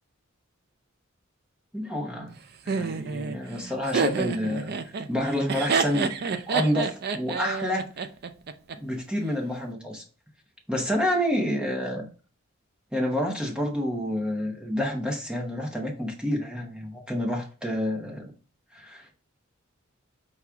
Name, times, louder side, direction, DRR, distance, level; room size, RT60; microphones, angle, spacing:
voice 1, 1.7-2.3 2.7-4.8 5.1-6.1 6.5-7.9 8.8-10.0 10.7-12.1 12.9-18.3 18.7-19.1, equal, 5° right, 1 dB, 0.8 m, -28 dB
Laughter, 2.7-8.8, right 5 dB, 50° right, 0.4 m, -28 dB
5.8 x 2.4 x 3.4 m, 0.36 s
head